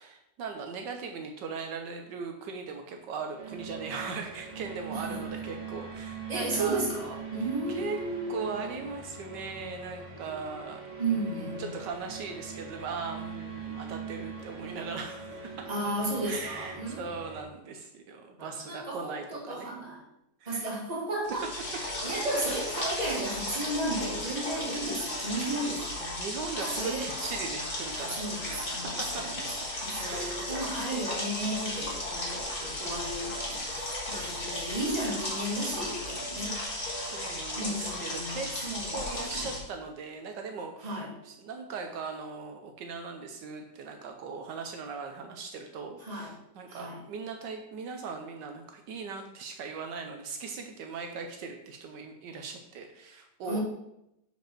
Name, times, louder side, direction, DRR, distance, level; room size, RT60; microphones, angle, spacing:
voice 1, 0.0-6.8 7.7-8.0 8.3-10.8 11.1-15.7 16.2-19.7 20.4-20.7 22.1-22.3 26.0-28.2 28.4-29.3 29.6-30.3 37.0-38.5 38.9-53.6, right 5 dB, 75° right, 4 dB, 1.4 m, -39 dB
sound 1, 3.4-17.4, right 5 dB, 45° right, 1.6 m, -42 dB
voice 2, 4.9-5.2 6.3-8.3 11.0-11.7 15.7-17.0 18.4-20.0 20.5-21.4 22.0-25.9 26.6-27.1 27.9-29.4 29.8-36.6 37.6-38.4 38.6-39.5 40.8-41.1 46.0-46.3 46.7-47.0 53.4-53.6, right 1 dB, 25° right, -2 dB, 1.7 m, -34 dB
sound 2, 21.2-39.6, left 1 dB, 30° left, 1.7 m, -35 dB
5.2 x 5.1 x 5.9 m, 0.83 s
omnidirectional pair, 1.9 m